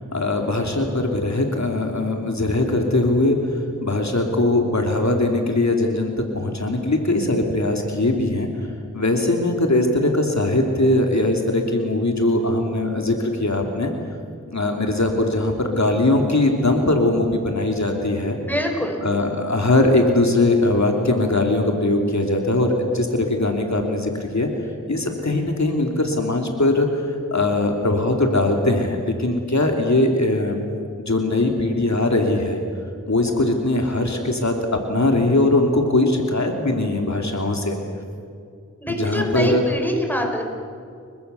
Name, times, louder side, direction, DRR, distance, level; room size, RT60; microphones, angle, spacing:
voice 1, 0.1-8.5 8.9-13.9 14.5-18.4 19.0-24.5 24.9-30.6 31.1-32.6 33.1-34.5 34.9-37.8 38.9-39.6, left 2 dB, 60° left, 2 dB, 2.9 m, -20 dB
voice 2, 18.4-19.0 38.8-40.4, equal, 5° left, 2 dB, 5.8 m, -25 dB
30.0 x 23.5 x 7.0 m, 2.4 s
wide cardioid pair, 45°, 31 cm